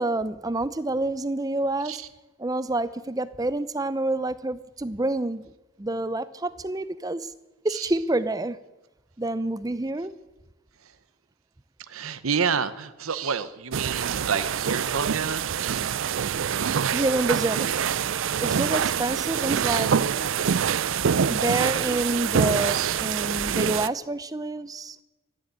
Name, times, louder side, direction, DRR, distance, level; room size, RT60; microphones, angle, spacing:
voice 1, 0.0-2.0 2.4-5.5 5.8-7.3 7.6-8.6 9.2-10.1 16.9-17.7 18.4-20.1 21.3-25.0, right 2 dB, 15° right, 14 dB, 0.5 m, -28 dB
voice 2, 11.9-16.1 16.6-16.9 18.9-19.0 19.6-20.0 22.7-23.0, right 6 dB, 85° right, 12 dB, 0.8 m, -30 dB
sound 1, 13.7-23.9, right 7 dB, 65° right, 0.5 m, -25 dB
13.5 x 11.5 x 8.7 m, 1.0 s
head